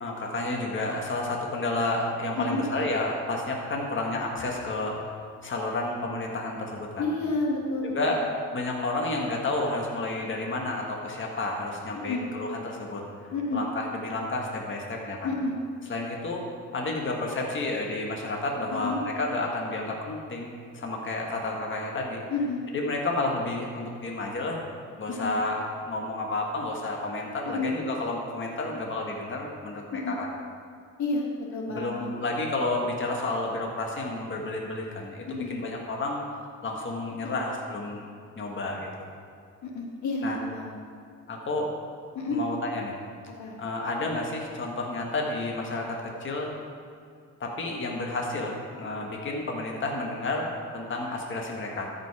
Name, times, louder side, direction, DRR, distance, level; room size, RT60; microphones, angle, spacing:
voice 1, 0.0-5.0 5.4-7.0 7.9-8.2 8.5-13.0 13.5-15.3 15.9-16.4 16.7-22.2 22.7-24.6 25.0-30.3 31.7-36.2 36.6-38.0 38.4-38.9 40.2-40.4 41.3-41.7 42.3-42.9 43.6-46.5 47.4-51.9, left 2 dB, 40° left, 0 dB, 1.6 m, -31 dB
voice 2, 7.0-8.2 12.1-12.2 13.3-13.6 15.2-15.6 18.7-19.0 22.3-22.6 25.1-25.3 27.4-27.7 29.9-30.2 31.0-32.1 35.3-35.5 37.2-37.4 39.6-40.8 42.1-42.4 43.3-43.6, left 3 dB, 70° left, -1 dB, 1.6 m, -30 dB
13.5 x 5.3 x 4.8 m, 2.4 s
cardioid pair, 90°, 30 cm